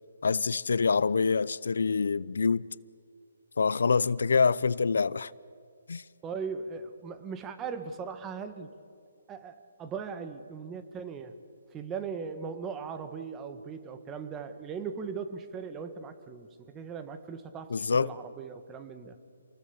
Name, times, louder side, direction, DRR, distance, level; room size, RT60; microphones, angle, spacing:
voice 1, 0.2-2.7 3.6-5.3 5.9-6.0 17.7-18.1, left 5 dB, 75° left, 0.6 m, -26 dB
voice 2, 6.2-8.7 9.3-11.3 11.7-19.2, right 5 dB, 15° right, 1.4 m, -39 dB
28.0 x 20.5 x 7.2 m
hypercardioid pair, 155°, 0 cm